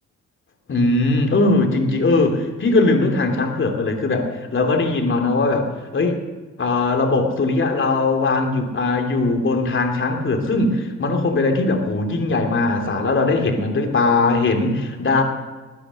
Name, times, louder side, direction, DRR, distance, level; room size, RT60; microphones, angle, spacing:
voice 1, 0.7-6.2 6.6-15.2, left 3 dB, 40° left, 3 dB, 2.9 m, -20 dB
20.0 x 9.8 x 6.4 m, 1.4 s
cardioid pair, 90°, 30 cm